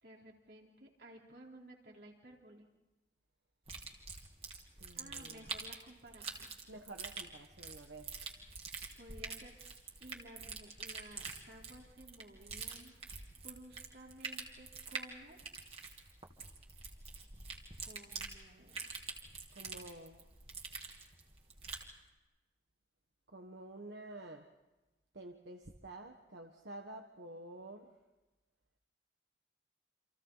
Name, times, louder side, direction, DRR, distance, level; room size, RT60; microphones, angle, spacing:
voice 1, 0.0-2.7 4.9-6.5 8.9-9.6 10.0-12.9 13.4-15.4 17.8-18.8, right 1 dB, 65° right, -1 dB, 4.1 m, -55 dB
sound 1, 3.7-21.9, right 4 dB, 35° right, 2.6 m, -46 dB
voice 2, 4.8-5.4 6.7-8.3 19.5-20.2 23.3-24.5 25.1-27.9, right 2 dB, 85° right, 3 dB, 1.5 m, -50 dB
29.0 x 27.0 x 4.1 m, 1.1 s
head